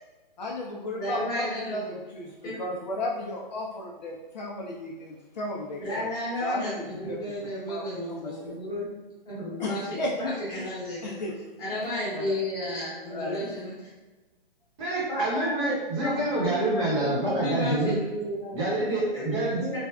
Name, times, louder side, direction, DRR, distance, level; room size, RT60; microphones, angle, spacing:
voice 1, 0.4-6.0 6.4-6.8 7.1-7.8 8.2-8.6 9.6-10.1 11.0-11.5 12.1-12.4 13.1-13.4, left 1 dB, 50° left, -2 dB, 0.5 m, -34 dB
voice 2, 1.0-2.0 2.4-2.6 5.8-8.8 9.2-11.1 11.6-13.7 15.1-18.6 19.6-19.8, left 1 dB, 15° left, -9 dB, 1.0 m, -33 dB
voice 3, 14.8-18.0 18.5-19.6, right 2 dB, 30° right, -6 dB, 0.9 m, -27 dB
3.3 x 2.2 x 2.3 m, 1.2 s
hypercardioid pair, 145°, 29 cm